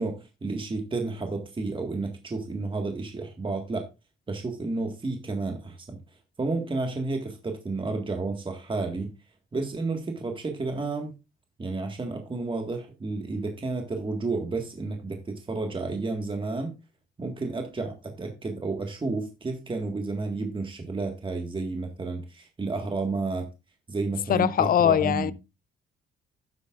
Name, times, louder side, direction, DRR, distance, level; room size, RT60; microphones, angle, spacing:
voice 1, 0.0-3.9 4.3-6.0 6.4-9.1 9.5-11.2 11.6-16.7 17.2-23.5 23.9-25.3, right 3 dB, 25° right, 1.8 m, -31 dB
voice 2, 24.3-25.3, left 9 dB, 45° left, 0.6 m, -21 dB
11.5 x 9.8 x 2.5 m
cardioid pair, 90°, 20 cm